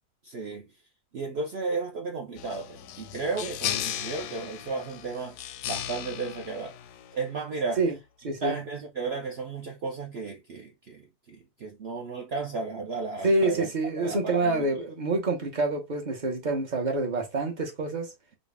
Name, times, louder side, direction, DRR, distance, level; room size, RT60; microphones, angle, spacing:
voice 1, 0.2-0.7 1.1-6.8 7.1-7.8 8.4-13.7 14.0-14.7, right 4 dB, 60° right, 0.7 m, -34 dB
sound 1, 2.4-7.4, left 10 dB, 85° left, 1.1 m, -36 dB
voice 2, 8.2-8.6 13.2-18.1, right 2 dB, 35° right, 0.9 m, -27 dB
4.1 x 2.4 x 3.4 m
omnidirectional pair, 1.6 m